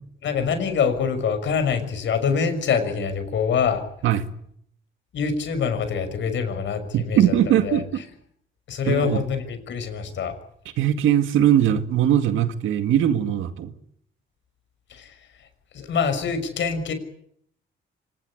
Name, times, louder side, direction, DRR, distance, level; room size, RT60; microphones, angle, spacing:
voice 1, 0.2-3.8 5.1-7.3 7.6-7.8 8.7-10.3 14.9-15.5 15.7-16.9, left 6 dB, 70° left, 9 dB, 6.1 m, -25 dB
voice 2, 6.9-7.8 8.9-9.2 10.8-13.7, right 10 dB, 85° right, 10 dB, 2.1 m, -20 dB
25.5 x 19.0 x 9.8 m, 0.69 s
cardioid pair, 90°, 20 cm